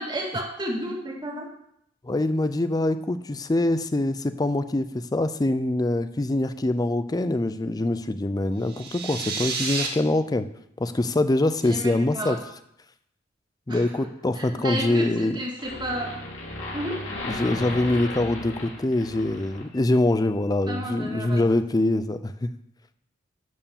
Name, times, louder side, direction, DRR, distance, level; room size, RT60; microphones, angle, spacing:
voice 1, 0.0-1.5 11.6-12.4 13.7-13.9 14.3-16.1 16.7-17.0 20.7-21.4, right 1 dB, 25° right, -2 dB, 2.2 m, -31 dB
voice 2, 2.0-10.5 10.8-12.4 13.7-15.4 17.2-22.5, left 2 dB, 20° left, 11 dB, 0.4 m, -24 dB
sound 1, 8.6-9.9, right 5 dB, 55° right, 1.6 m, -30 dB
sound 2, 15.2-15.3 15.6-20.0, left 2 dB, 75° left, 3.1 m, -35 dB
11.0 x 4.6 x 7.1 m, 0.74 s
head